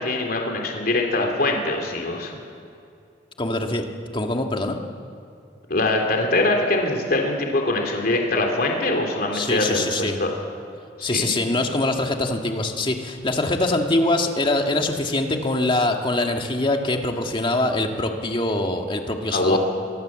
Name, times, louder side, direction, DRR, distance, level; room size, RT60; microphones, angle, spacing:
voice 1, 0.0-2.4 5.7-10.4 11.0-11.3 19.3-19.6, left 2 dB, 60° left, 2 dB, 3.3 m, -23 dB
voice 2, 3.4-3.9 4.1-4.8 9.3-10.2 11.0-19.6, left 2 dB, 30° left, 3 dB, 1.9 m, -23 dB
23.0 x 22.0 x 7.6 m, 2.5 s
head